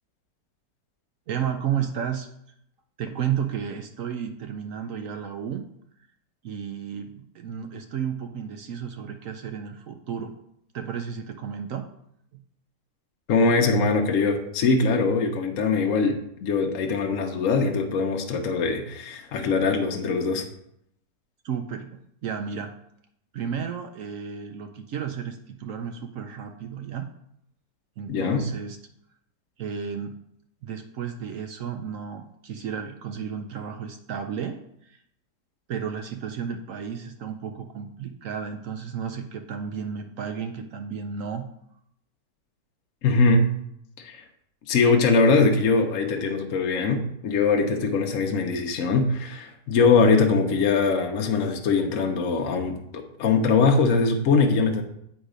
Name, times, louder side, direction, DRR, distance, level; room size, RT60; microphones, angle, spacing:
voice 1, 1.3-2.3 3.0-5.6 6.4-10.3 10.7-11.8 21.4-22.7 23.3-27.1 28.0-28.8 29.6-30.2 30.6-34.5 34.8-35.0 35.7-41.5, right 7 dB, 65° right, 6 dB, 0.8 m, -32 dB
voice 2, 13.3-20.5 28.1-28.4 43.0-43.5 44.0-44.2 44.7-54.8, left 4 dB, 60° left, 3 dB, 1.0 m, -22 dB
8.1 x 4.0 x 5.0 m, 0.74 s
omnidirectional pair, 1.8 m